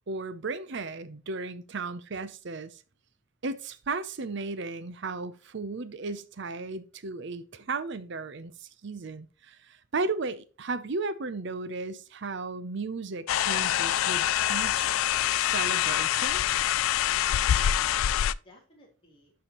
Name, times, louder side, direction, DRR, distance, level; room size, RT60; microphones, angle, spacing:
voice 1, 0.1-2.8 3.4-14.9 15.4-16.4, right 3 dB, 55° right, 0.6 m, -35 dB
sound 1, 13.3-18.3, left 11 dB, 80° left, 0.3 m, -25 dB
voice 2, 17.1-19.3, left 1 dB, 25° left, 3.1 m, -56 dB
12.0 x 5.6 x 3.0 m
head